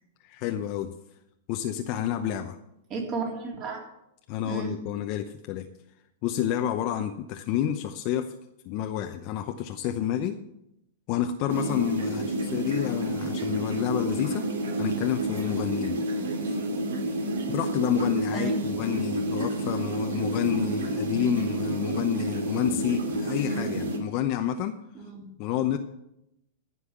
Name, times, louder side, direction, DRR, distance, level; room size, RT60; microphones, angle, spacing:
voice 1, 0.2-0.9 1.5-2.6 4.3-5.7 6.2-8.3 8.6-10.4 11.1-14.5 14.8-16.0 16.5-16.6 17.5-24.8 25.4-25.8, left 10 dB, 45° left, 5 dB, 0.8 m, -29 dB
voice 2, 2.9-3.8 4.4-4.7 12.1-12.4 18.3-18.7 25.0-25.3, right 4 dB, 30° right, 0 dB, 3.5 m, -33 dB
sound 1, 11.5-24.0, right 1 dB, 85° right, 2.8 m, -29 dB
15.0 x 5.6 x 8.1 m, 0.84 s
hypercardioid pair, 145°, 0 cm